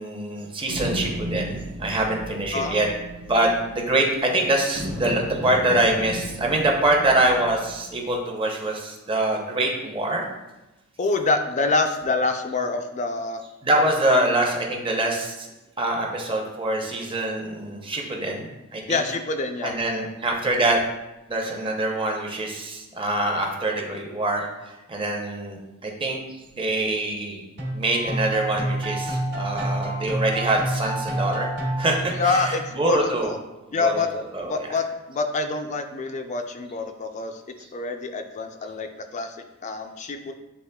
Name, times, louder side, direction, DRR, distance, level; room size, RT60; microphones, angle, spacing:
voice 1, 0.0-2.9 3.3-10.2 13.6-15.5 15.8-19.0 19.6-20.8 21.3-27.4 27.7-31.5 31.8-33.3 33.7-34.7, right 1 dB, 25° right, 0 dB, 0.7 m, -24 dB
sound 1, 0.7-4.3 4.7-8.1, equal, 85° right, 1.1 m, -34 dB
voice 2, 2.5-2.9 11.0-13.4 18.9-19.7 32.2-33.4 33.7-34.1 34.4-37.4 37.7-40.3, left 3 dB, 35° left, 6 dB, 0.4 m, -26 dB
sound 2, 27.6-32.8, right 1 dB, 50° right, 1.2 m, -28 dB
7.9 x 3.0 x 2.2 m, 1.0 s
head